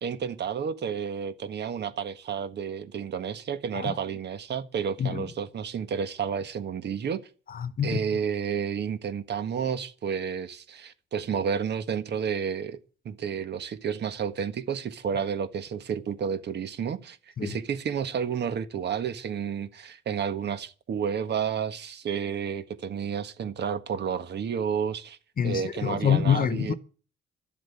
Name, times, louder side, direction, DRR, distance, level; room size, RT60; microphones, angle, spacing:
voice 1, 0.0-7.3 7.8-12.8 13.0-25.2 25.4-26.7, right 7 dB, 60° right, 1.5 m, -31 dB
voice 2, 7.5-8.0 17.4-17.6 25.4-26.7, left 8 dB, 45° left, 1.1 m, -26 dB
12.5 x 7.6 x 9.9 m
cardioid pair, 90°, 20 cm